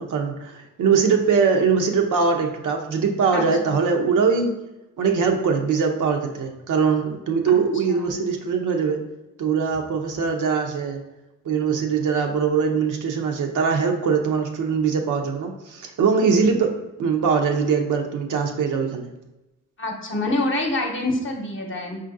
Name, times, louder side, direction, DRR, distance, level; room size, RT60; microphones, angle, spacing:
voice 1, 0.0-4.5 5.0-9.0 9.4-11.0 11.4-19.1, right 5 dB, 55° right, 3 dB, 0.7 m, -22 dB
voice 2, 19.8-22.0, left 2 dB, 35° left, 1 dB, 1.0 m, -26 dB
5.0 x 2.5 x 2.6 m, 0.96 s
hypercardioid pair, 55°, 37 cm